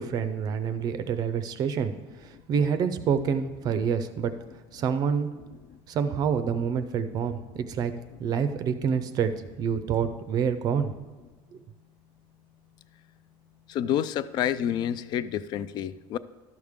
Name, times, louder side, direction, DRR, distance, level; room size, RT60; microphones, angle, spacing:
voice 1, 0.0-1.9 2.2-4.3 4.7-5.3 5.9-7.9 8.2-10.9 11.5-11.6, right 7 dB, 35° right, 10 dB, 0.5 m, -27 dB
voice 2, 13.7-16.2, left 10 dB, 40° left, 16 dB, 0.4 m, -28 dB
12.0 x 6.5 x 3.6 m, 1.3 s
cardioid pair, 155°, 11 cm